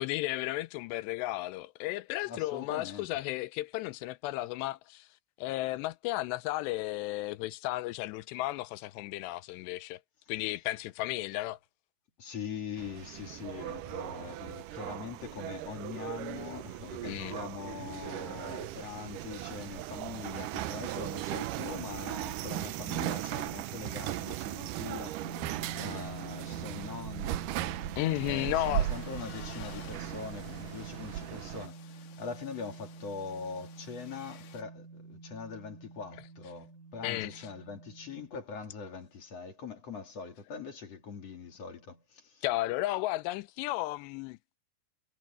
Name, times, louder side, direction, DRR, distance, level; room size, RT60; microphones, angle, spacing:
voice 1, 0.0-5.1 5.4-10.0 10.3-11.6 17.1-17.4 27.9-28.9 37.0-37.5 42.4-44.4, left 17 dB, 85° left, 2.8 m, -34 dB
voice 2, 2.3-3.1 12.2-25.2 25.8-27.4 28.2-42.4, left 6 dB, 40° left, 3.1 m, -42 dB
sound 1, 12.8-31.7, right 14 dB, 90° right, 1.9 m, -38 dB
sound 2, 25.2-38.3, right 4 dB, 55° right, 4.1 m, -46 dB
sound 3, 28.1-34.6, left 10 dB, 60° left, 2.6 m, -53 dB
omnidirectional pair, 4.8 m